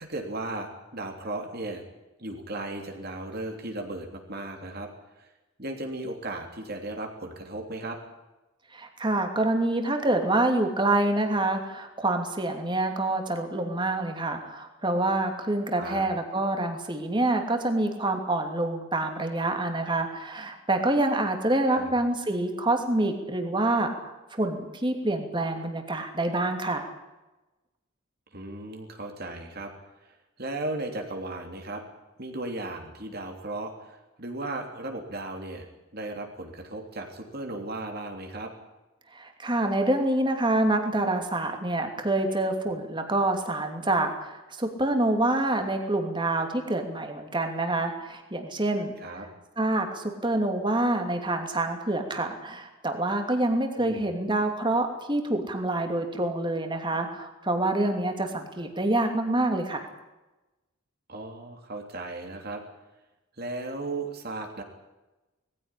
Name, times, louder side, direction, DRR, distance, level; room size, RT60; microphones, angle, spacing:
voice 1, 0.0-1.8 2.2-4.9 5.2-5.3 5.6-8.0 15.8-16.1 21.7-21.9 28.3-29.7 30.0-31.8 32.2-35.7 35.9-38.5 49.0-49.3 53.7-54.0 61.1-62.6 63.4-64.6, right 2 dB, 45° right, 3 dB, 3.2 m, -36 dB
voice 2, 8.7-26.9 39.1-49.3 49.6-59.9, right 2 dB, 20° right, 4 dB, 2.8 m, -27 dB
20.5 x 15.5 x 10.0 m, 1.1 s
head